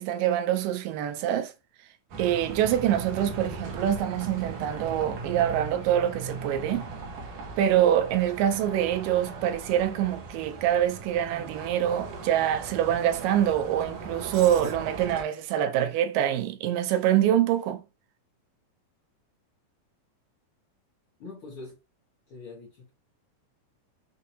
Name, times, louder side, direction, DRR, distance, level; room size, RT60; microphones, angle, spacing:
voice 1, 0.0-1.5 2.2-6.9 7.6-17.8, right 11 dB, 85° right, 2.3 m, -25 dB
Bus, 2.1-15.2, right 3 dB, 65° right, 1.6 m, -39 dB
voice 2, 21.2-21.7 22.3-22.9, left 3 dB, 55° left, 1.7 m, -43 dB
6.2 x 2.7 x 2.7 m
omnidirectional pair, 3.8 m